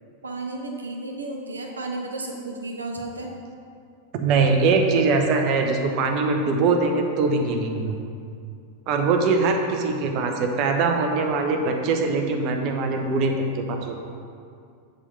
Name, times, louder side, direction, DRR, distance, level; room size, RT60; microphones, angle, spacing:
voice 1, 0.2-3.3, right 2 dB, 75° right, 1 dB, 1.0 m, -33 dB
voice 2, 4.2-8.0 8.9-14.0, right 4 dB, 40° right, 3 dB, 0.9 m, -22 dB
7.4 x 5.2 x 5.7 m, 2.4 s
figure-of-eight pair, 90°, 0 cm